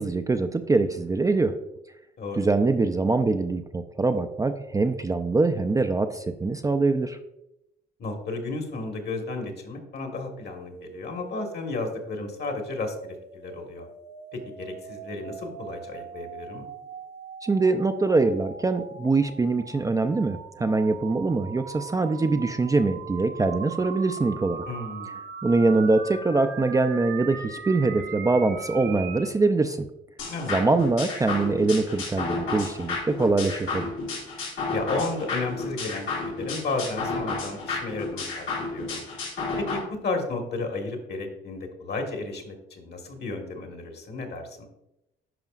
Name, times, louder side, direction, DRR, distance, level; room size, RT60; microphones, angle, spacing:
voice 1, 0.0-1.5 2.4-7.2 17.4-24.6 25.4-29.9 30.5-33.9, right 3 dB, 15° right, 8 dB, 0.4 m, -23 dB
voice 2, 2.2-2.5 8.0-13.9 14.3-16.7 24.7-25.2 30.3-30.5 34.7-39.0 39.6-44.6, left 3 dB, 55° left, 3 dB, 1.5 m, -33 dB
sound 1, 10.5-29.3, right 6 dB, 60° right, 0.9 m, -41 dB
sound 2, 30.2-39.8, left 3 dB, 90° left, 2.2 m, -32 dB
10.5 x 4.9 x 2.4 m, 0.87 s
cardioid pair, 90°, 20 cm